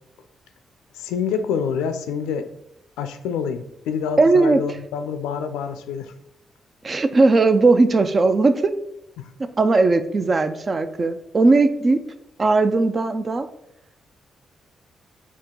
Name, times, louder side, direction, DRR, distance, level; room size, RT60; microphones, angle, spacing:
voice 1, 0.9-2.5 3.0-6.1 9.2-9.3, left 6 dB, 90° left, 9 dB, 0.4 m, -27 dB
voice 2, 4.2-4.6 6.8-8.7 9.6-12.0 12.4-13.5, right 3 dB, 45° right, 11 dB, 0.4 m, -18 dB
4.4 x 2.9 x 3.6 m, 0.79 s
supercardioid pair, 50°, 0 cm